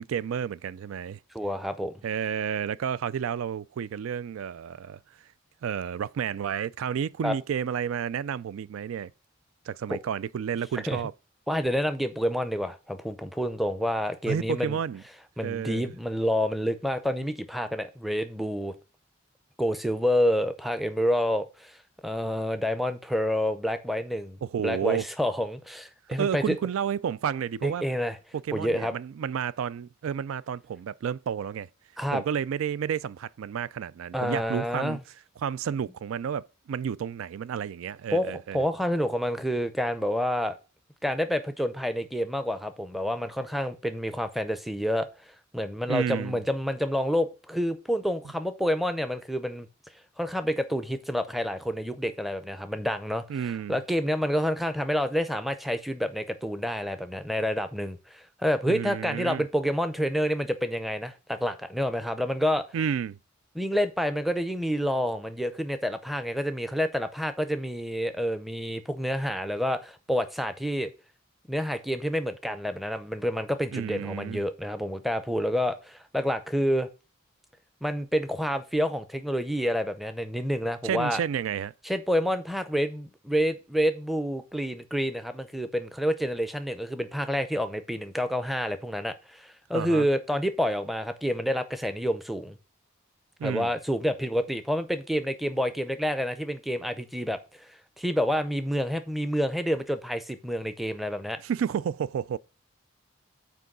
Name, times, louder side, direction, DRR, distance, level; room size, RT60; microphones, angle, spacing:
voice 1, 0.0-1.2 2.0-5.0 5.6-9.1 9.7-11.1 14.3-15.0 15.4-15.9 24.4-25.1 26.2-27.8 28.3-31.7 32.1-35.0 35.4-38.6 45.9-46.4 53.3-53.8 58.7-59.4 62.7-63.2 73.7-74.4 80.8-81.7 89.7-90.1 93.4-93.7 101.4-102.4, right 8 dB, 85° right, 0.3 m, -31 dB
voice 2, 1.3-1.9 7.2-7.3 10.9-11.0 11.5-14.8 15.4-18.7 19.6-21.8 22.0-24.4 24.6-26.6 27.6-28.2 28.5-28.9 32.0-32.2 34.1-35.0 38.1-40.6 41.0-45.1 45.5-49.7 50.2-53.2 53.7-62.6 63.5-70.9 71.5-76.9 77.8-81.2 81.9-92.6 93.4-97.6 98.0-101.4, equal, ahead, 0.5 m, -28 dB
6.1 x 4.6 x 6.6 m
head